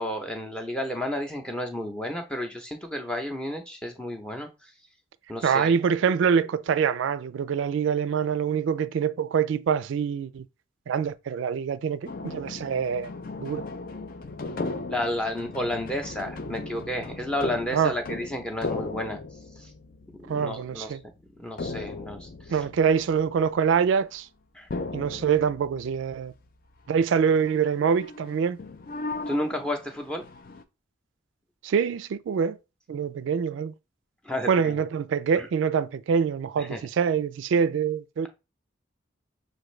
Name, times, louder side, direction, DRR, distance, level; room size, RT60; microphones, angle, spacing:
voice 1, 0.0-4.5 5.3-6.3 14.9-19.2 19.6-19.7 20.2-20.9 21.4-22.3 24.5-24.7 29.3-30.2 34.2-34.8 35.4-35.5 36.6-36.8, left 1 dB, 5° left, 0.6 m, -32 dB
voice 2, 5.4-10.4 10.9-13.1 13.4-13.6 17.7-18.0 20.3-21.0 22.5-24.3 24.9-26.3 26.9-28.6 31.6-32.6 32.9-33.7 34.5-38.3, right 6 dB, 80° right, 0.3 m, -25 dB
sound 1, 12.0-24.1 24.7-26.6 26.8-27.0 27.3-30.6, left 3 dB, 45° left, 0.4 m, -37 dB
6.1 x 2.6 x 3.1 m
head